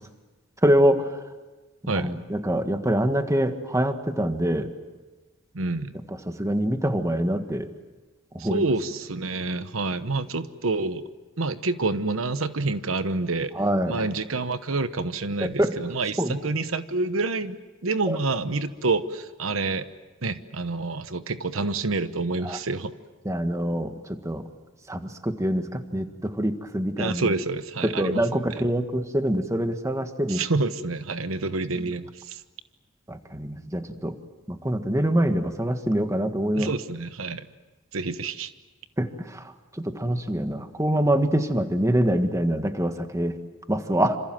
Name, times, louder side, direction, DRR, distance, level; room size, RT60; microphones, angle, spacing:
voice 1, 0.6-1.0 1.8-4.7 6.3-7.7 8.3-8.6 13.6-14.0 15.4-15.8 16.2-16.3 18.1-18.2 22.4-22.6 23.2-24.4 24.9-27.3 27.8-30.4 33.1-34.1 34.6-36.7 39.0-39.4 39.8-43.3 43.7-44.2, right 1 dB, 15° right, 7 dB, 1.7 m, -25 dB
voice 2, 5.5-5.9 8.4-11.0 11.4-13.5 13.9-19.9 20.2-22.9 27.0-28.6 30.3-32.4 36.6-37.5 37.9-38.5, right 3 dB, 85° right, 11 dB, 1.1 m, -28 dB
27.5 x 27.0 x 7.7 m, 1.2 s
head